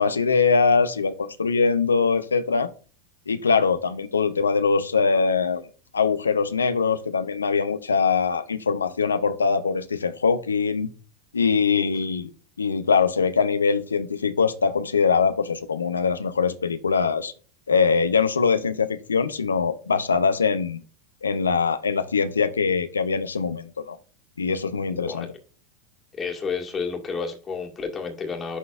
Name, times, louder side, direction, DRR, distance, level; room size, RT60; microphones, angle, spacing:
voice 1, 0.0-2.7 3.3-5.6 5.9-10.9 11.3-12.3 12.6-17.3 17.7-20.8 21.2-24.0 24.4-25.3, left 5 dB, 85° left, 11 dB, 0.6 m, -22 dB
voice 2, 24.9-25.3 26.2-28.6, left 5 dB, 25° left, 2 dB, 1.9 m, -31 dB
11.5 x 3.9 x 2.4 m, 0.38 s
figure-of-eight pair, 85°, 0 cm